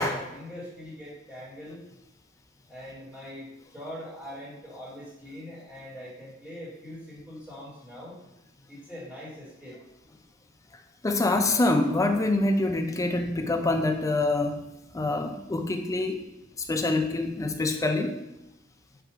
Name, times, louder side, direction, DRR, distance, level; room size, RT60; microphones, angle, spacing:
voice 1, 0.0-1.8 2.7-8.2 8.7-9.8, left 1 dB, 5° right, -9 dB, 1.3 m, -42 dB
voice 2, 11.0-14.6 14.9-16.2 16.7-18.2, left 2 dB, 15° left, 5 dB, 0.3 m, -25 dB
4.5 x 2.4 x 4.7 m, 0.91 s
head